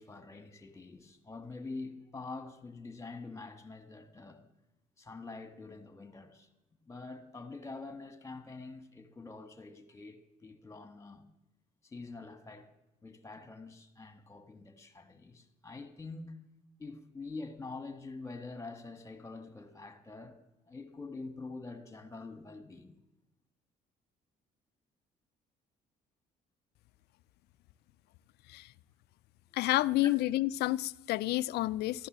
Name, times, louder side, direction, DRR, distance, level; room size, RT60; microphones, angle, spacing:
voice 1, 0.0-4.4 5.0-6.5 6.9-11.3 11.8-12.7 13.0-16.4 16.8-20.4 20.7-22.9 30.0-30.1, left 3 dB, 15° left, 1.7 m, -46 dB
voice 2, 29.5-32.1, left 16 dB, 75° left, 0.5 m, -29 dB
14.5 x 11.0 x 7.4 m
cardioid pair, 110°, 17 cm